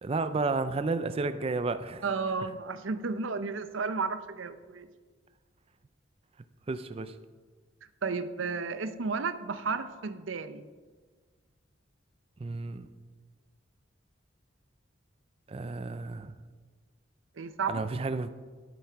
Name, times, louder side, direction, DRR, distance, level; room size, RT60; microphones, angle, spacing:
voice 1, 0.0-2.0 6.7-7.2 12.4-12.9 15.5-16.3 17.7-18.3, right 3 dB, 30° right, 11 dB, 0.4 m, -31 dB
voice 2, 2.0-4.9 8.0-10.6 17.4-17.8, right 4 dB, 90° right, 11 dB, 0.7 m, -33 dB
11.5 x 8.7 x 4.6 m, 1.4 s
head